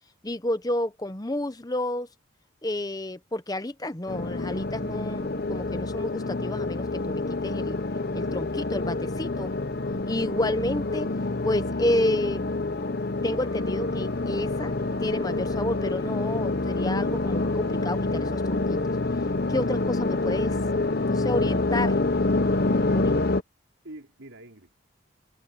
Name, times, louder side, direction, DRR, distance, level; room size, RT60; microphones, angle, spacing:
voice 1, 0.2-2.1 2.6-7.8 8.1-9.5 10.1-11.1 11.4-12.5 13.2-14.7 15.0-18.8 19.5-20.6 21.0-22.0 22.9-23.2, left 1 dB, 20° left, 0.9 m, -30 dB
sound 1, 4.1-23.4, left 2 dB, 50° left, 0.8 m, -27 dB
Wind instrument woodwind instrument, 13.3-17.8, right 1 dB, 15° right, 3.5 m, -55 dB
voice 2, 22.7-23.4 23.8-24.8, right 1 dB, 80° right, 4.1 m, -47 dB
head